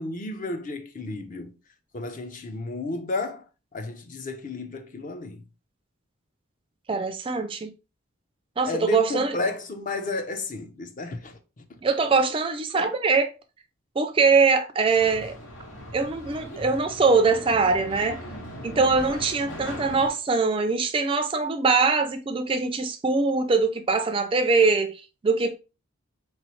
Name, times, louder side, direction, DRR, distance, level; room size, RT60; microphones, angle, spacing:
voice 1, 0.0-1.6 1.9-3.4 3.7-5.5 8.6-11.6, left 2 dB, 40° left, 0.5 m, -32 dB
voice 2, 6.9-7.7 8.6-9.4 11.8-13.3 14.0-15.3 15.9-18.2 18.6-25.6, right 4 dB, 25° right, 0.3 m, -22 dB
sound 1, 15.0-20.1, equal, 85° left, 1.4 m, -39 dB
4.0 x 3.1 x 3.0 m
head